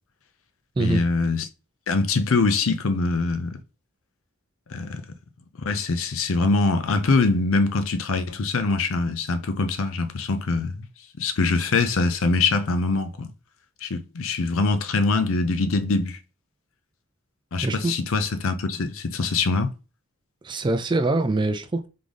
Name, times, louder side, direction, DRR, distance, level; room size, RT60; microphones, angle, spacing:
voice 1, 0.8-1.5 1.9-3.6 4.7-5.0 5.6-10.9 11.2-13.3 13.8-16.2 17.5-19.7, left 3 dB, 65° left, 0.5 m, -23 dB
voice 2, 17.6-17.9 20.4-21.9, right 2 dB, 20° right, 0.3 m, -24 dB
3.8 x 3.4 x 3.6 m
head